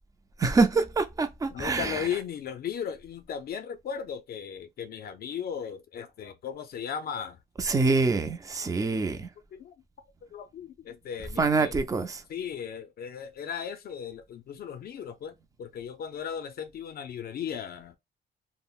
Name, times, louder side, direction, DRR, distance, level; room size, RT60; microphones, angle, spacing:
voice 1, 0.4-2.1 7.6-9.3 11.4-12.2, right 3 dB, 20° right, 0.4 m, -25 dB
voice 2, 1.5-7.4 8.9-9.0 9.5-9.7 10.2-11.8 12.3-18.0, left 8 dB, 60° left, 0.4 m, -36 dB
3.5 x 2.0 x 2.3 m
cardioid pair, 135°, 18 cm